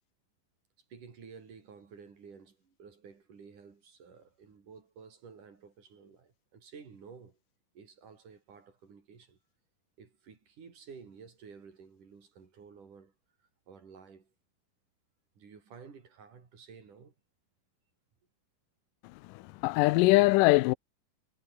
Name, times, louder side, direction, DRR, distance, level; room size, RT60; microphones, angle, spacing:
voice 1, 0.9-7.4 7.8-9.4 10.0-13.1 13.7-14.3 15.4-17.1, right 6 dB, 70° right, 5.4 m, -52 dB
voice 2, 19.3-20.7, left 21 dB, 85° left, 2.2 m, -22 dB
omnidirectional pair, 3.8 m